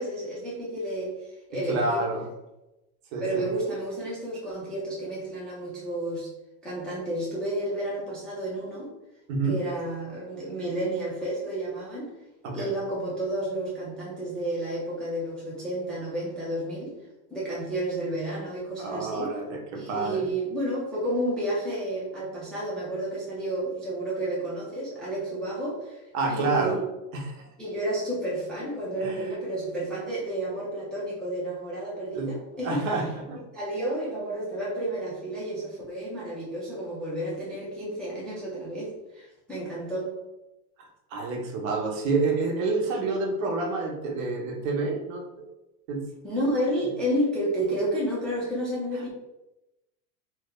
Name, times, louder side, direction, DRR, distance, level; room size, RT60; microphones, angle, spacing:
voice 1, 0.0-2.0 3.2-6.3 6.6-8.9 9.4-12.1 12.5-16.9 17.3-19.3 19.7-26.8 27.6-32.8 33.5-40.1 46.2-49.1, right 1 dB, ahead, -7 dB, 0.3 m, -31 dB
voice 2, 1.7-2.3 3.1-3.5 9.3-9.6 12.4-12.7 18.8-20.2 26.1-26.8 27.1-27.5 29.0-29.3 32.1-32.3 32.6-33.4 41.1-45.4 45.9-46.0, right 3 dB, 65° right, 2 dB, 0.9 m, -28 dB
3.1 x 2.1 x 3.6 m, 0.95 s
supercardioid pair, 145°, 44 cm